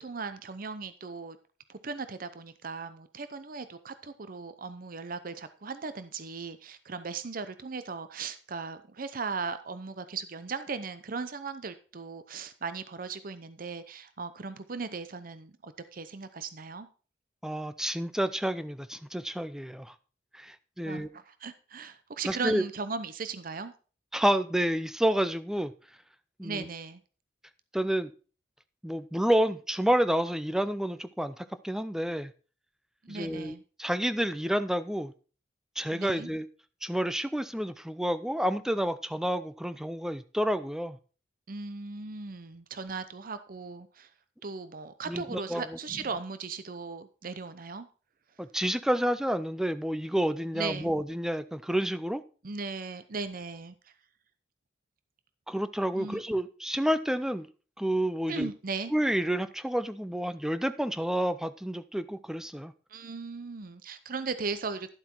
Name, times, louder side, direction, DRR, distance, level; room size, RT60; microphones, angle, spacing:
voice 1, 0.0-1.4 1.7-16.9 20.8-23.7 26.4-27.0 33.0-33.6 35.9-36.3 41.5-44.1 44.4-47.9 50.5-50.9 52.4-53.8 55.9-56.2 58.3-58.9 62.9-64.9, right 4 dB, 50° right, 12 dB, 0.7 m, -37 dB
voice 2, 17.4-19.9 20.3-21.1 22.3-22.7 24.1-25.7 26.4-26.7 27.7-28.1 28.8-32.3 33.1-35.1 35.8-36.5 36.8-41.0 45.1-45.8 48.4-52.2 55.5-57.5 57.8-58.5 58.9-62.7, equal, 5° right, 12 dB, 0.5 m, -29 dB
11.5 x 7.7 x 4.4 m, 0.37 s
head